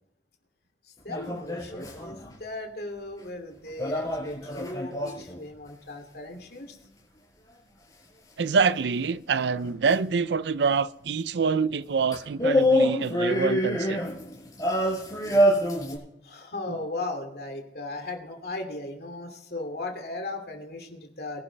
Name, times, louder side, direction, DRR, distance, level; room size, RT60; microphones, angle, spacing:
voice 1, 1.0-6.8 16.2-21.4, left 2 dB, 60° left, 2.6 m, -37 dB
sound 1, 1.1-2.3 3.8-5.4 9.9-10.0 12.1-16.0, equal, 20° left, 5.2 m, -25 dB
voice 2, 8.4-14.0 16.7-16.8, right 5 dB, 80° right, 0.5 m, -26 dB
22.5 x 11.0 x 3.4 m
head